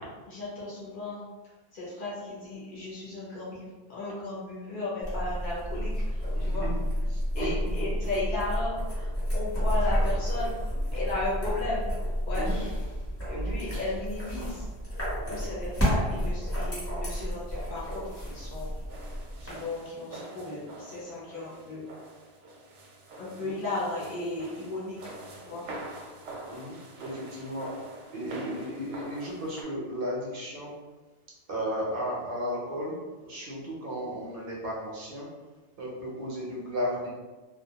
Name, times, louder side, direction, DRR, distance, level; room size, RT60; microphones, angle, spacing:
voice 1, 0.3-1.2 1.7-6.7 7.3-10.5 10.9-11.9 12.3-12.5 13.2-14.6 15.3-18.7 19.4-21.8 23.2-25.0 25.4-25.6, left 2 dB, 55° left, -7 dB, 0.8 m, -35 dB
sound 1, 5.0-19.5, equal, 15° left, 0.8 m, -30 dB
voice 2, 6.3-6.8 7.1-7.5 12.4-12.6 13.3-13.6 21.2-21.3 23.4-23.6 26.5-27.7 28.1-30.7 31.5-32.9 33.2-35.3 35.8-37.1, equal, 60° right, -4 dB, 0.7 m, -34 dB
sound 2, 18.9-29.6, right 2 dB, 90° right, 0.9 m, -45 dB
2.2 x 2.2 x 2.7 m, 1.2 s
omnidirectional pair, 1.2 m